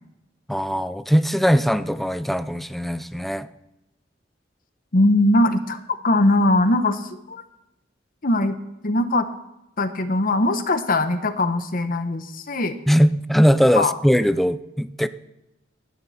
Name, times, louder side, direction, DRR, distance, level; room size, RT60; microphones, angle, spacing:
voice 1, 0.5-3.5 12.9-15.1, equal, ahead, 13 dB, 0.5 m, -20 dB
voice 2, 4.9-7.4 8.2-8.6 8.8-9.3 9.8-12.8 13.8-13.9, left 2 dB, 50° left, 9 dB, 1.1 m, -20 dB
17.0 x 13.5 x 4.3 m, 0.92 s
head